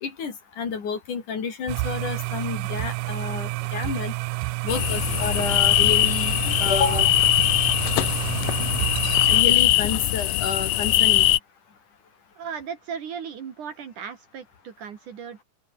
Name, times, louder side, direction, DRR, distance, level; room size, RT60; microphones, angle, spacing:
voice 1, 0.0-4.1 4.6-7.2 9.3-11.3, left 6 dB, 50° left, 4.7 m, -29 dB
sound 1, 1.7-9.4, right 19 dB, 85° right, 1.8 m, -29 dB
sound 2, 4.7-11.4, left 16 dB, 70° left, 2.2 m, -21 dB
voice 2, 12.4-15.4, right 7 dB, 55° right, 3.4 m, -36 dB
open air
omnidirectional pair, 4.6 m